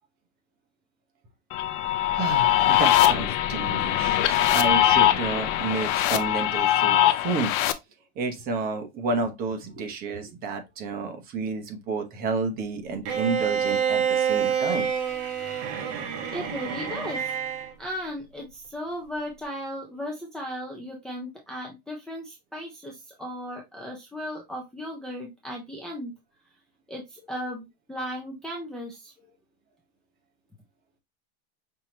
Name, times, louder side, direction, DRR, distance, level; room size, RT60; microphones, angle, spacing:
sound 1, 1.5-7.7, left 12 dB, 50° left, 0.6 m, -22 dB
voice 1, 2.1-7.5 8.2-14.9, right 4 dB, 30° right, 1.0 m, -30 dB
Bowed string instrument, 13.1-17.7, right 7 dB, 50° right, 1.1 m, -27 dB
voice 2, 16.3-17.4 17.8-26.1 26.9-29.1, equal, ahead, 0.4 m, -36 dB
5.6 x 2.9 x 3.0 m
supercardioid pair, 160°, 32 cm